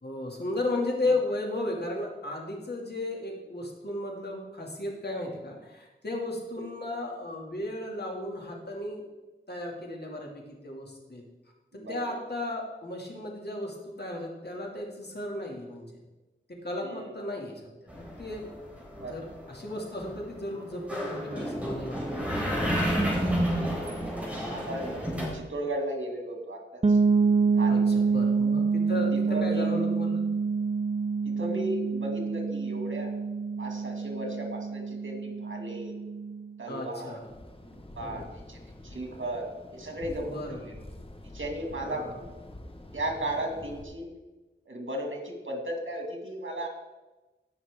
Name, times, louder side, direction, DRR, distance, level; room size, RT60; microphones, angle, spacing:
voice 1, 0.0-9.0 9.5-11.2 11.7-15.9 16.6-18.5 19.1-22.0 27.7-30.3 36.7-37.3 38.0-38.3 40.2-40.6 41.8-42.2, left 2 dB, 55° left, -1 dB, 2.4 m, -34 dB
voice 2, 11.7-12.2 16.8-17.2 19.0-19.3 23.5-24.0 24.4-27.0 27.5-28.2 28.9-29.0 29.3-29.7 31.2-33.1 33.6-35.9 36.6-37.2 37.7-38.2 38.5-38.6 38.8-39.4 39.7-40.8 41.3-42.3 42.9-44.1 44.7-46.7, right 1 dB, 85° right, 2 dB, 2.2 m, -36 dB
sound 1, 17.9-25.3, equal, 5° right, 3.7 m, -31 dB
sound 2, 26.8-36.5, right 5 dB, 30° right, 0.5 m, -27 dB
sound 3, 37.2-43.8, left 1 dB, 30° left, 1.3 m, -46 dB
17.5 x 6.1 x 3.6 m, 1.1 s
wide cardioid pair, 55°, 20 cm